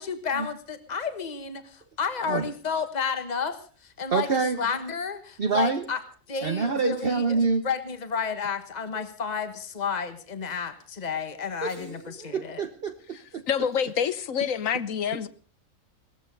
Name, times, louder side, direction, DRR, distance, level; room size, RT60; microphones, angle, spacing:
voice 1, 0.0-3.6 4.0-4.3 4.6-6.0 6.3-7.3 7.6-12.6, left 6 dB, 35° left, 1.5 m, -31 dB
voice 2, 4.1-4.6 5.4-5.9 6.4-7.7 8.9-9.0 11.6-13.4, right 4 dB, 45° right, 1.1 m, -27 dB
voice 3, 13.5-15.3, left 8 dB, 75° left, 1.3 m, -27 dB
18.5 x 14.5 x 5.3 m
omnidirectional pair, 1.4 m